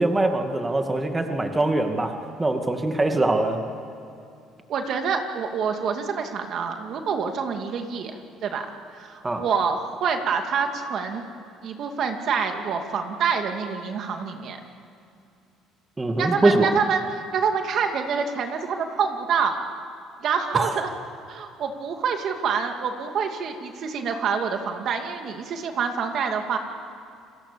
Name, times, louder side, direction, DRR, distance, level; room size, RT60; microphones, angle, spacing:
voice 1, 0.0-3.6 9.2-9.4 16.0-16.7 20.5-20.7, right 2 dB, 15° right, 4 dB, 2.2 m, -23 dB
voice 2, 4.7-11.2 11.6-14.6 16.2-19.6 20.2-20.9 21.3-26.6, right 6 dB, 60° right, 5 dB, 2.5 m, -27 dB
30.0 x 21.0 x 7.1 m, 2.6 s
cardioid pair, 95°, 0 cm